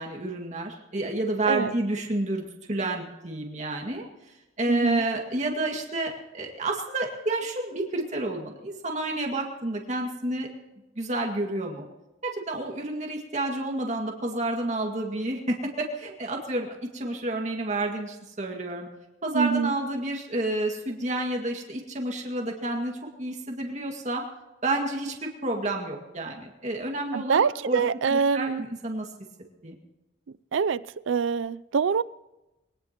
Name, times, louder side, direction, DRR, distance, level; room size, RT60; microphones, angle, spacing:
voice 1, 0.0-4.0 4.6-10.5 11.0-11.9 12.2-18.9 19.2-24.2 24.6-29.1 29.6-29.8, right 2 dB, 40° right, 2.1 m, -30 dB
voice 2, 4.7-5.1 19.3-19.7 27.1-28.6 30.5-32.0, right 6 dB, 80° right, 0.4 m, -25 dB
23.0 x 18.0 x 3.0 m
head